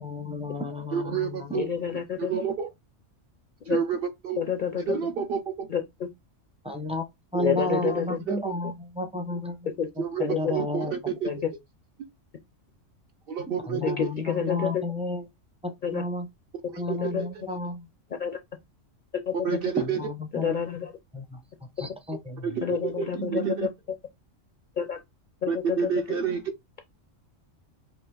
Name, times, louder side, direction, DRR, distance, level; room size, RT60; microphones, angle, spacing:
voice 1, 0.0-1.6 6.6-7.0 7.3-9.7 10.0-10.9 13.7-15.3 15.6-16.3 16.8-17.9 19.8-20.5 21.1-22.5, left 2 dB, 5° right, 0.5 m, -32 dB
voice 2, 0.9-1.7 2.2-2.7 3.7-4.4 4.9-5.7 7.3-7.9 8.3-8.5 10.0-11.4 12.0-12.1 13.3-14.0 16.7-17.3 19.4-20.1 22.4-23.7 25.5-26.5, right 7 dB, 60° right, 0.7 m, -29 dB
voice 3, 1.5-2.3 3.7-3.8 4.4-4.8 5.7-5.8 7.4-8.2 9.8-9.9 10.2-10.5 11.2-11.3 13.8-14.8 15.8-16.0 17.0-17.2 18.2-18.4 19.3-19.4 20.3-20.9 22.6-23.4 24.8-25.0 25.4-25.8, left 8 dB, 55° left, 0.5 m, -28 dB
4.9 x 2.8 x 2.3 m
omnidirectional pair, 1.3 m